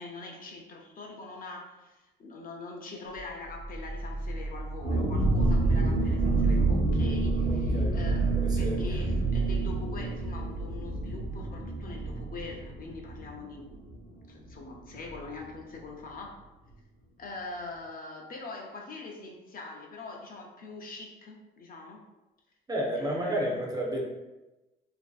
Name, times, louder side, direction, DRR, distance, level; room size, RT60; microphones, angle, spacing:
voice 1, 0.0-16.4 17.2-22.0 23.0-23.6, left 3 dB, 45° left, 1 dB, 0.5 m, -43 dB
sound 1, 3.1-5.7 6.1-6.6 7.0-11.3, right 2 dB, 90° right, 0.9 m, -39 dB
sound 2, 4.8-14.2 14.5-14.6 14.9-15.2, right 2 dB, 55° right, 0.9 m, -28 dB
voice 2, 7.4-7.9 8.3-8.9 22.7-24.0, right 1 dB, 20° right, -1 dB, 0.5 m, -32 dB
2.6 x 2.3 x 2.3 m, 1.0 s
cardioid pair, 90°, 20 cm